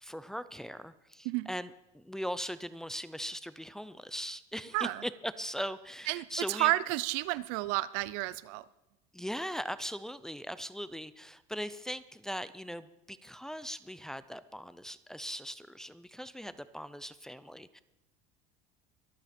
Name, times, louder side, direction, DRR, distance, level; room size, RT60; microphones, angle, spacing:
voice 1, 0.0-6.7 9.1-17.8, equal, 5° left, 13 dB, 0.5 m, -40 dB
voice 2, 4.7-5.0 6.1-8.7, right 19 dB, 75° right, 19 dB, 0.6 m, -31 dB
24.0 x 8.9 x 4.4 m, 0.89 s
cardioid pair, 135°, 18 cm